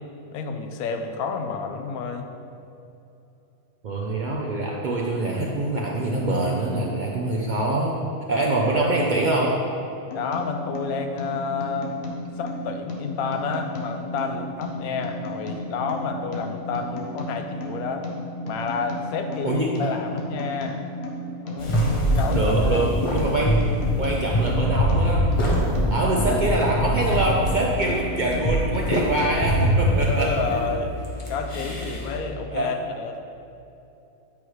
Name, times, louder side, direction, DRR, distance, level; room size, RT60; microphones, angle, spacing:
voice 1, 0.3-2.3 10.1-12.0 12.4-18.1 18.4-20.8 21.4-22.9 30.1-30.9 31.3-33.2, left 5 dB, 85° left, 5 dB, 1.1 m, -30 dB
voice 2, 3.8-8.0 8.3-9.6 19.4-19.7 22.0-23.6 24.0-25.2 25.9-30.3 32.5-32.7, right 2 dB, 70° right, -3 dB, 0.4 m, -24 dB
sound 1, 10.1-29.6, equal, 50° left, 1.0 m, -34 dB
sound 2, 21.6-32.2, equal, 30° left, 0.7 m, -24 dB
8.6 x 4.8 x 3.1 m, 2.8 s
omnidirectional pair, 1.5 m